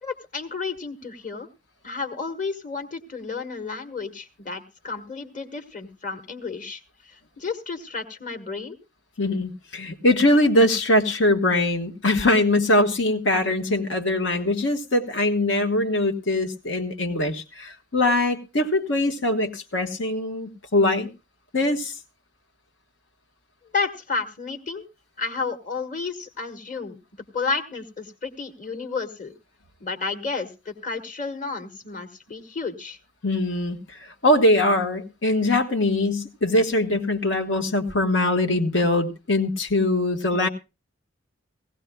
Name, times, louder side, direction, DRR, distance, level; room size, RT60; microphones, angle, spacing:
voice 1, 0.0-1.5 1.8-8.8 23.7-24.8 25.2-27.0 27.3-29.3 29.8-33.0, left 4 dB, 45° left, 1.5 m, -31 dB
voice 2, 9.2-21.1 21.5-21.9 33.2-33.8 34.2-40.5, left 1 dB, 85° left, 1.3 m, -22 dB
18.5 x 16.0 x 2.2 m
head